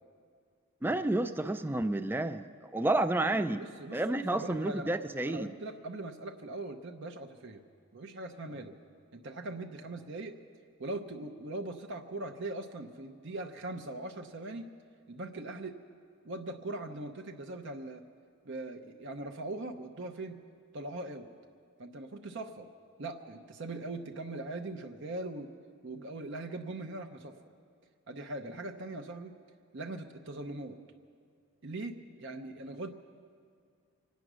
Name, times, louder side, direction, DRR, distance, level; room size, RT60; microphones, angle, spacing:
voice 1, 0.8-3.6 3.9-5.5, right 2 dB, 10° right, 9 dB, 0.3 m, -30 dB
voice 2, 3.3-4.9 5.3-7.6 7.9-8.7 9.1-10.3 10.8-14.7 15.1-15.8 16.2-18.0 18.4-20.4 20.7-21.3 21.8-22.7 23.0-25.5 25.8-27.3 28.1-29.3 29.7-30.8 31.6-32.9, right 2 dB, 55° right, 4 dB, 0.7 m, -41 dB
25.0 x 9.3 x 6.2 m, 2.2 s
head